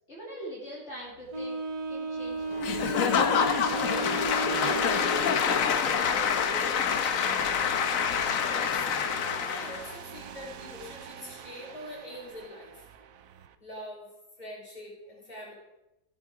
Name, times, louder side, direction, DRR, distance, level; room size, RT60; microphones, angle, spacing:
voice 1, 0.1-1.6 1.9-3.1 3.6-7.6, right 1 dB, 45° left, -6 dB, 3.1 m, -43 dB
sound 1, 1.1-13.5, right 8 dB, 65° right, 1.1 m, -44 dB
Wind instrument woodwind instrument, 1.3-5.4, right 3 dB, 85° right, 2.2 m, -34 dB
Applause / Crowd, 2.6-9.9, left 7 dB, 65° left, 1.2 m, -26 dB
voice 2, 8.4-12.9 13.6-14.1 14.4-15.5, left 1 dB, 25° left, -4 dB, 3.5 m, -44 dB
15.0 x 7.8 x 4.8 m, 0.95 s
omnidirectional pair, 1.7 m